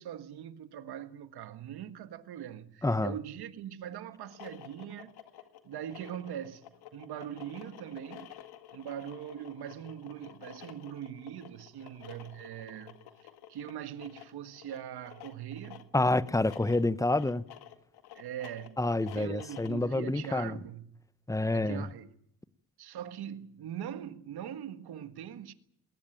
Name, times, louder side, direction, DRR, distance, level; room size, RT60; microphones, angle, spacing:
voice 1, 0.0-5.1 5.6-6.6 6.9-8.3 8.7-15.9 18.1-20.9 21.5-22.1 22.8-25.5, right 10 dB, 70° right, 1.7 m, -42 dB
voice 2, 2.8-3.1 15.9-17.4 18.8-20.5 21.3-21.9, left 2 dB, 10° left, 1.0 m, -28 dB
sound 1, 4.2-19.9, left 11 dB, 70° left, 2.0 m, -51 dB
21.0 x 18.5 x 9.2 m
supercardioid pair, 60°, 40 cm